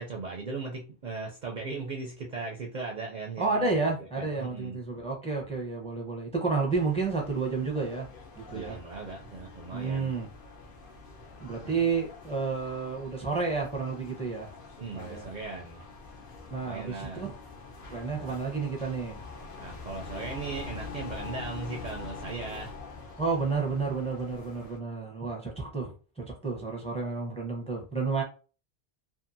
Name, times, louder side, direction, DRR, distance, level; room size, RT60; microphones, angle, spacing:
voice 1, 0.0-4.8 8.5-10.1 11.6-11.8 14.8-15.8 16.6-17.2 18.3-18.4 19.6-22.8, right 4 dB, 55° right, 0 dB, 0.5 m, -38 dB
voice 2, 3.4-8.1 8.4-8.8 9.7-10.3 11.4-14.5 14.9-15.2 16.5-17.3 17.9-19.2 23.2-28.2, right 4 dB, 5° left, 0 dB, 0.6 m, -31 dB
sound 1, 6.7-24.8, left 4 dB, 60° left, 0.8 m, -45 dB
2.7 x 2.5 x 2.6 m, 0.35 s
omnidirectional pair, 1.1 m